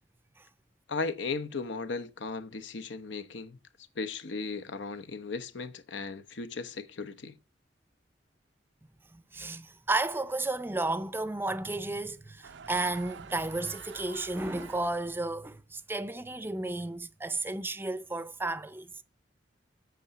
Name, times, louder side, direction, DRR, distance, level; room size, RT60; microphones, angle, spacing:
voice 1, 0.9-3.6 4.0-7.4, left 4 dB, 80° left, 0.8 m, -36 dB
voice 2, 9.1-18.9, right 2 dB, 10° right, 0.5 m, -33 dB
sound 1, 12.4-15.2, right 6 dB, 70° right, 0.5 m, -48 dB
8.4 x 6.3 x 6.9 m
head